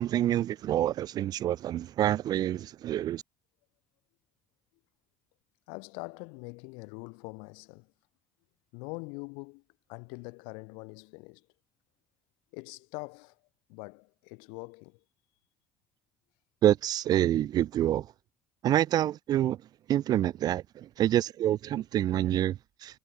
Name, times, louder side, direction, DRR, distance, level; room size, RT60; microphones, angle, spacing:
voice 1, 0.0-3.2 16.6-18.1 18.6-19.6 19.9-23.0, right 12 dB, 50° right, 0.5 m, -27 dB
voice 2, 5.7-7.9 8.7-9.6 9.9-11.5 12.5-13.4 13.7-15.0, left 36 dB, 70° left, 2.0 m, -43 dB
figure-of-eight pair, 50°, 9 cm